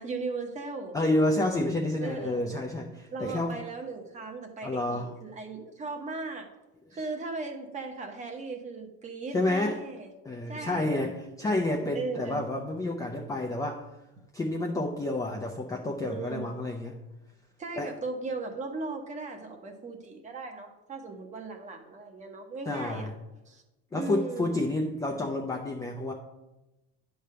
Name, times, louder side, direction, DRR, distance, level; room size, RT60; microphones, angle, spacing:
voice 1, 0.0-1.0 2.0-2.4 3.1-6.5 6.9-10.1 10.5-11.0 11.9-12.4 16.0-16.5 17.6-23.1 23.5-23.6 23.9-24.5, right 3 dB, 20° right, 4 dB, 0.9 m, -37 dB
voice 2, 0.9-3.6 4.6-5.2 9.3-9.8 10.2-13.8 14.3-17.0 17.8-17.9 22.7-23.1 23.9-26.1, left 2 dB, 10° left, -1 dB, 0.4 m, -29 dB
10.0 x 3.4 x 6.6 m, 1.0 s
cardioid pair, 170°, 34 cm